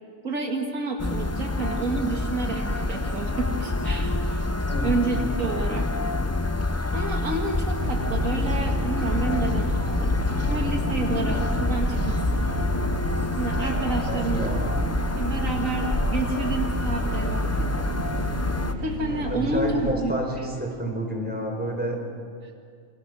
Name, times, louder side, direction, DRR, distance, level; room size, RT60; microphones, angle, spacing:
voice 1, 0.2-4.4 4.8-5.9 6.9-10.1 10.5-12.5 13.3-14.6 15.2-17.7 18.8-20.5, right 3 dB, 70° right, 2 dB, 2.4 m, -30 dB
sound 1, 1.0-18.7, left 2 dB, 20° left, 0.4 m, -27 dB
voice 2, 4.7-5.0 14.1-14.8 19.1-22.0, equal, 5° right, 1 dB, 4.4 m, -29 dB
sound 2, 7.8-19.9, right 1 dB, 50° right, 1.6 m, -32 dB
28.5 x 24.5 x 6.2 m, 2.2 s
omnidirectional pair, 1.4 m